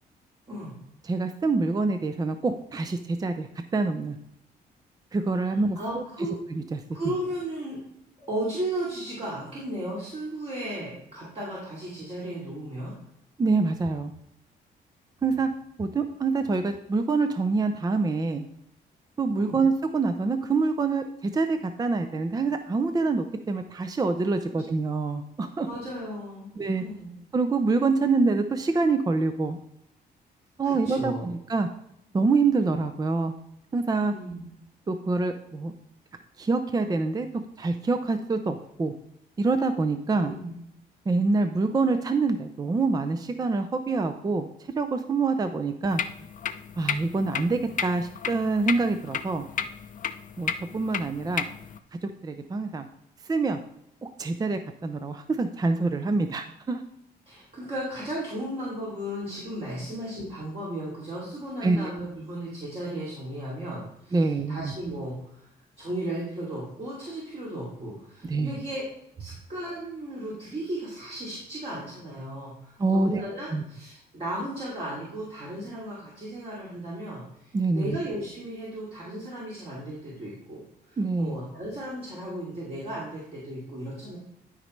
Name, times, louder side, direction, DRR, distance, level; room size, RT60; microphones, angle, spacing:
voice 1, 1.0-3.5 3.7-4.2 5.1-6.0 6.7-6.8 13.4-14.1 15.2-15.5 15.8-18.4 19.2-25.7 26.6-26.8 27.3-29.6 30.6-31.7 32.1-33.3 33.7-34.1 34.9-35.7 36.4-37.3 37.6-38.9 39.4-40.3 41.1-44.5 44.8-46.0 46.8-49.4 50.4-51.4 52.0-52.9 53.3-53.6 54.2-56.8 61.6-61.9 64.1-64.7 68.3-68.5 72.8-73.2 73.5-73.6 77.5-78.0 81.0-81.4, right 3 dB, 20° right, 8 dB, 0.5 m, -26 dB
voice 2, 5.4-6.3 6.9-7.8 8.2-12.9 19.4-19.6 25.6-26.5 26.7-27.1 30.6-31.3 34.0-34.5 40.2-40.5 57.3-65.5 65.8-68.8 69.2-80.6 80.9-84.2, right 1 dB, 40° right, -6 dB, 2.7 m, -35 dB
sound 1, 45.9-51.8, left 7 dB, 50° left, 0.5 m, -33 dB
12.0 x 5.3 x 3.2 m, 0.77 s
cardioid pair, 130°, 17 cm